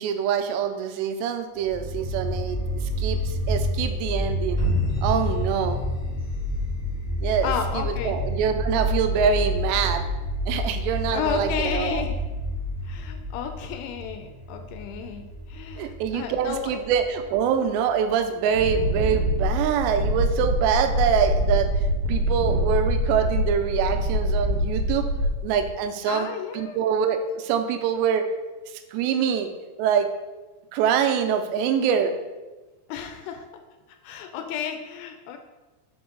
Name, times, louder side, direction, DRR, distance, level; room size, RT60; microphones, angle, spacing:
voice 1, 0.0-4.6 5.0-5.8 7.2-10.0 10.5-12.0 15.8-25.1 25.4-28.2 28.9-29.5 29.8-30.1 30.7-32.2, right 7 dB, 90° right, 7 dB, 2.7 m, -25 dB
sound 1, 1.6-18.7, equal, 55° left, 1.1 m, -29 dB
sound 2, 4.6-7.3, left 3 dB, 30° left, 1.1 m, -31 dB
voice 2, 7.4-8.2 11.1-12.2 12.8-16.8 26.1-26.8 32.9-33.5 34.0-35.4, left 8 dB, 85° left, 6 dB, 2.6 m, -32 dB
Wind, 18.5-25.7, equal, 70° right, 2.2 m, -24 dB
5.4 x 5.1 x 3.7 m, 1.2 s
omnidirectional pair, 4.9 m